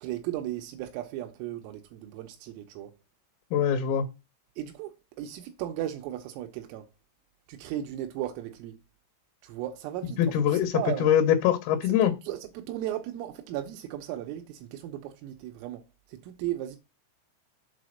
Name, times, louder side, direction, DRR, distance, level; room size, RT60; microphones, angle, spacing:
voice 1, 0.0-2.9 4.6-6.9 7.5-8.8 9.4-11.1 12.0-16.8, right 13 dB, 85° right, 3.4 m, -36 dB
voice 2, 3.5-4.1 10.2-10.7 11.0-12.1, left 9 dB, 90° left, 3.6 m, -23 dB
8.0 x 4.1 x 6.4 m
omnidirectional pair, 5.9 m